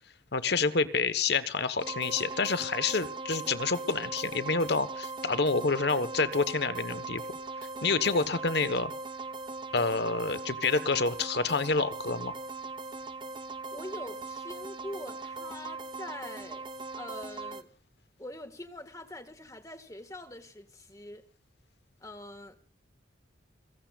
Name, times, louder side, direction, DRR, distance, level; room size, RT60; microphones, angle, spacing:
voice 1, 0.3-7.2 7.8-8.9 9.7-12.3, left 4 dB, 55° left, 1.2 m, -28 dB
sound 1, 1.8-17.6, right 3 dB, 25° right, 0.7 m, -40 dB
voice 2, 13.7-16.7 16.9-17.7 18.2-21.2 22.0-22.6, left 1 dB, 15° left, 1.7 m, -44 dB
28.5 x 17.0 x 2.4 m
head